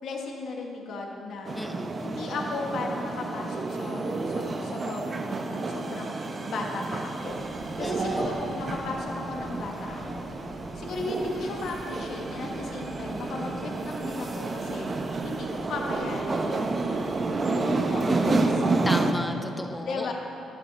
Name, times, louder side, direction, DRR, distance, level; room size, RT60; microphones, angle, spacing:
voice 1, 0.0-1.6 2.0-7.4 7.8-10.3 10.7-16.8 17.5-19.0 19.9-20.1, left 3 dB, 65° left, 0 dB, 1.2 m, -36 dB
voice 2, 1.5-2.0 7.8-8.2 18.8-20.1, left 1 dB, 15° left, 7 dB, 0.7 m, -34 dB
sound 1, 1.5-19.1, right 3 dB, 35° right, 0.7 m, -30 dB
Walk footsteps, 7.1-18.4, left 1 dB, 30° left, 2.2 m, -49 dB
11.0 x 9.0 x 4.0 m, 2.8 s
cardioid pair, 90°, 0 cm